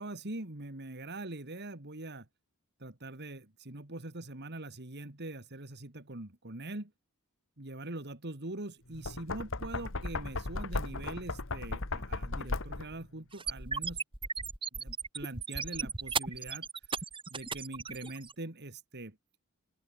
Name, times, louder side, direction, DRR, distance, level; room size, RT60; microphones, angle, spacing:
voice 1, 0.0-2.3 2.8-6.9 7.6-14.0 14.7-16.9 17.3-19.2, right 2 dB, 50° right, 2.4 m, -43 dB
Knock, 8.9-13.0, left 2 dB, 60° left, 2.0 m, -36 dB
sound 1, 13.3-18.3, right 5 dB, 25° right, 2.8 m, -36 dB
open air
head